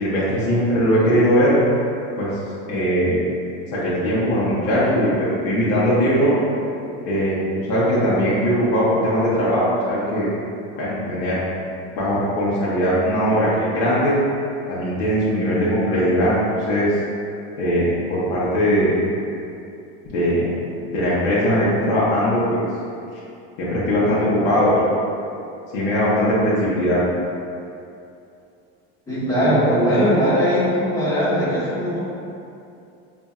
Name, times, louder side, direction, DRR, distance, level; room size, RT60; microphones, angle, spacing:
voice 1, 0.0-1.6 2.2-2.3 2.7-3.2 3.7-6.4 7.1-7.4 7.7-10.3 10.8-11.4 11.9-14.2 14.7-16.4 16.7-16.9 17.6-19.0 20.1-20.5 20.9-22.6 23.6-24.9 25.7-27.0, equal, 65° left, -8 dB, 0.9 m, -20 dB
voice 2, 29.1-32.0, equal, 10° left, -12 dB, 1.3 m, -19 dB
5.2 x 2.6 x 2.3 m, 2.6 s
cardioid pair, 160°, 30 cm